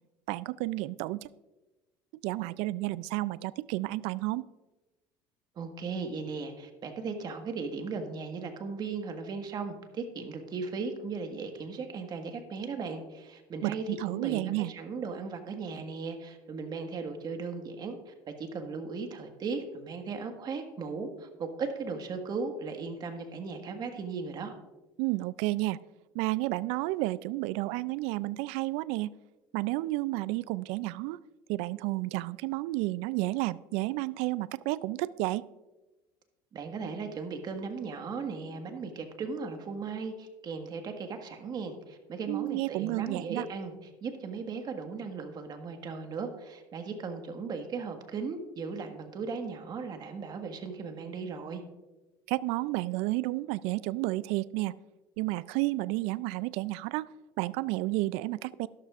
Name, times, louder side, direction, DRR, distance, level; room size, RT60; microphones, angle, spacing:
voice 1, 0.3-1.3 2.2-4.5 13.6-14.7 25.0-25.8 26.1-29.1 29.5-31.2 31.5-35.4 42.3-43.5 52.3-54.7 55.2-57.1 57.4-58.7, right 19 dB, 75° right, 19 dB, 0.4 m, -31 dB
voice 2, 5.5-24.5 36.5-43.7 44.0-51.6, right 4 dB, 40° right, 6 dB, 1.6 m, -37 dB
12.5 x 12.5 x 2.5 m, 1.1 s
supercardioid pair, 115°, 11 cm